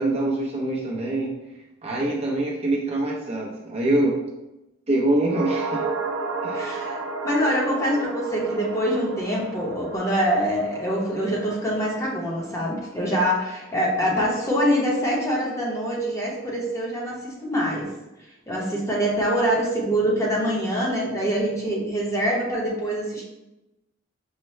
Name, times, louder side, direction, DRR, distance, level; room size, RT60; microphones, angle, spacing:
voice 1, 0.0-1.3 1.8-4.2 4.9-5.9 6.4-6.7, right 1 dB, 30° right, -3 dB, 0.7 m, -24 dB
sound 1, 5.3-13.7 14.0-14.1, right 3 dB, 70° right, 0.5 m, -33 dB
voice 2, 6.5-7.0 7.2-17.9 18.5-23.2, equal, 15° left, -4 dB, 0.9 m, -24 dB
5.6 x 2.2 x 3.1 m, 0.96 s
head